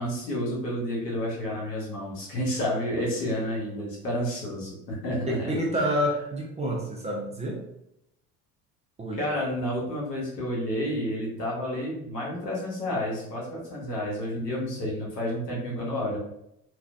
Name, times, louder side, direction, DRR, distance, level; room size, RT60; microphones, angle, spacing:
voice 1, 0.0-5.8 9.2-16.2, equal, 80° left, -4 dB, 1.1 m, -30 dB
voice 2, 5.3-7.6 9.0-9.2, equal, 15° right, -2 dB, 0.5 m, -28 dB
3.0 x 2.4 x 2.2 m, 0.78 s
figure-of-eight pair, 60°, 47 cm